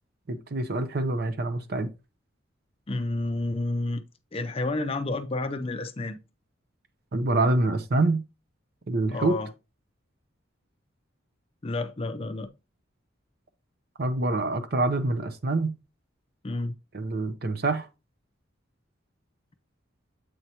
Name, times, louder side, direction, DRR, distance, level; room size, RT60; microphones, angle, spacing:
voice 1, 0.3-1.9 7.1-8.2 8.9-9.4 14.0-15.7 16.9-17.9, right 2 dB, 50° right, 0.6 m, -26 dB
voice 2, 2.9-4.0 4.3-6.2 9.1-9.5 11.6-12.5 16.4-16.8, left 2 dB, 30° left, 0.5 m, -30 dB
7.7 x 4.7 x 2.8 m
head